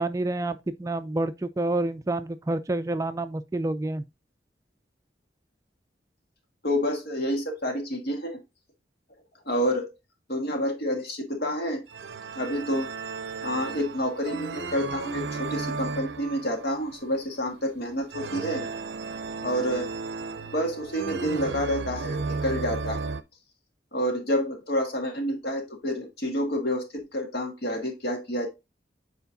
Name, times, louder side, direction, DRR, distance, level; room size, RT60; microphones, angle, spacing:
voice 1, 0.0-4.0, right 2 dB, 20° right, 0.3 m, -28 dB
voice 2, 6.6-8.4 9.4-9.9 10.3-11.8 12.3-12.9 13.4-18.7 19.4-19.8 20.4-23.1 23.9-26.9 27.1-28.5, equal, 60° left, 1.6 m, -28 dB
sound 1, 11.9-23.2, right 4 dB, 70° right, 0.5 m, -34 dB
8.1 x 4.4 x 2.7 m
head